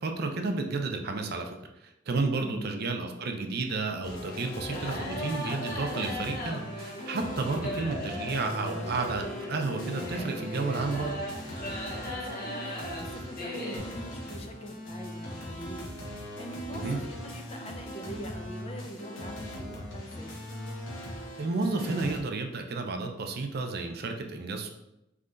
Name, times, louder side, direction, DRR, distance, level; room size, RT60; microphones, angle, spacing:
voice 1, 0.0-11.1 16.7-17.0 21.4-24.7, right 3 dB, 55° right, 5 dB, 0.5 m, -32 dB
voice 2, 2.4-2.7 7.6-7.9 12.1-20.4, equal, 30° left, 4 dB, 0.5 m, -43 dB
sound 1, 4.0-22.2, equal, 90° left, 1.1 m, -40 dB
sound 2, 4.2-13.8, left 1 dB, 50° left, 1.1 m, -38 dB
sound 3, 11.6-15.5, right 8 dB, 25° right, 0.8 m, -53 dB
3.7 x 3.3 x 3.8 m, 0.88 s
head